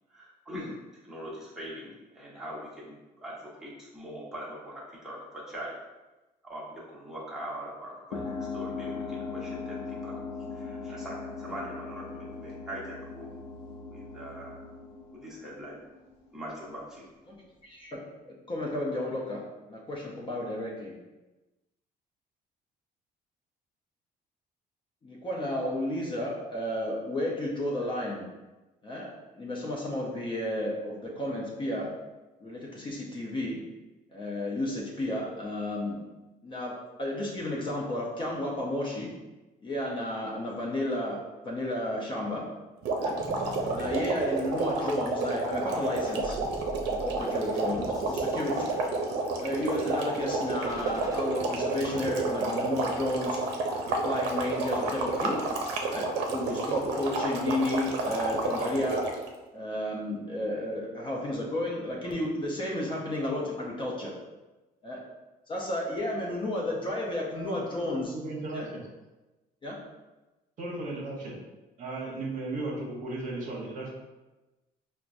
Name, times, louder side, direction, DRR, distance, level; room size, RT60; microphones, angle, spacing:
voice 1, 0.1-0.8 1.0-5.8 6.4-10.2 10.5-13.4 13.9-14.7 15.1-15.8 16.3-17.1, equal, 5° right, -7 dB, 1.1 m, -42 dB
sound 1, 8.1-16.2, left 4 dB, 85° left, 0.6 m, -39 dB
voice 2, 17.6-19.4 19.7-21.0 25.0-28.3 28.8-29.1 29.3-31.9 32.4-33.6 34.1-36.0 36.4-36.7 37.0-39.1 39.6-41.2 41.4-42.4 43.0-43.1 43.7-46.4 46.9-48.7 49.4-53.4 54.0-55.4 55.9-59.1 59.5-64.1 64.8-65.0 65.5-68.1 68.5-68.7 69.6-69.8, left 1 dB, 30° left, -3 dB, 0.7 m, -32 dB
sound 2, 42.8-59.3, right 3 dB, 85° right, 0.5 m, -30 dB
sound 3, 43.2-51.2, right 1 dB, 20° right, 0.6 m, -45 dB
voice 3, 68.1-68.9 70.6-71.3 71.8-73.9, right 2 dB, 50° right, -3 dB, 0.9 m, -35 dB
4.5 x 2.2 x 2.6 m, 1.1 s
cardioid pair, 110°, 17 cm